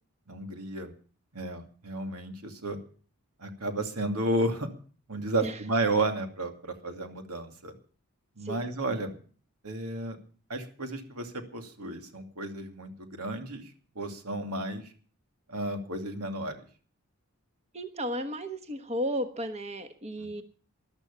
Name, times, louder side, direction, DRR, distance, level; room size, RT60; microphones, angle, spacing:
voice 1, 0.3-0.9 1.3-2.8 3.4-4.7 5.1-7.7 8.4-9.2 9.6-10.2 10.5-14.9 15.5-16.7 20.2-20.3, right 2 dB, 85° right, 5 dB, 2.6 m, -32 dB
voice 2, 17.7-20.4, equal, 30° right, 7 dB, 1.2 m, -34 dB
14.5 x 11.5 x 7.0 m, 0.42 s
head